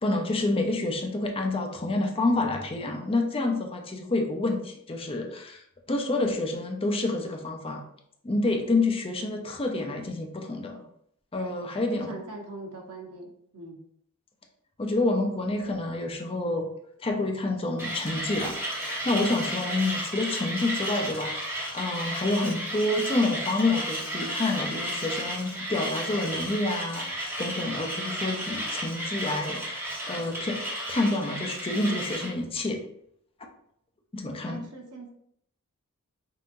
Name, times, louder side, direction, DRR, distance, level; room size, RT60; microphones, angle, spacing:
voice 1, 0.0-7.8 8.2-10.8 11.3-12.1 14.8-16.7 17.0-18.5 18.8-30.6 30.9-32.8 34.1-34.6, left 2 dB, 25° left, 3 dB, 0.5 m, -28 dB
voice 2, 11.9-13.8 34.4-35.1, right 2 dB, 90° right, 1 dB, 1.0 m, -41 dB
Mechanisms, 17.8-32.3, right 1 dB, 10° right, 1.3 m, -33 dB
5.5 x 2.7 x 2.6 m, 0.69 s
head